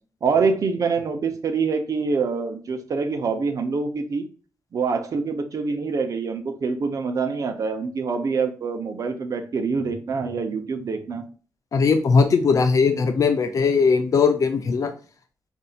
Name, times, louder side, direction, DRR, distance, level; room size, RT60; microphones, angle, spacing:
voice 1, 0.2-4.3 4.7-11.3, right 4 dB, 55° right, 6 dB, 0.8 m, -25 dB
voice 2, 11.7-14.9, left 5 dB, 55° left, 7 dB, 0.5 m, -19 dB
5.3 x 2.7 x 2.4 m, 0.37 s
cardioid pair, 95°, 7 cm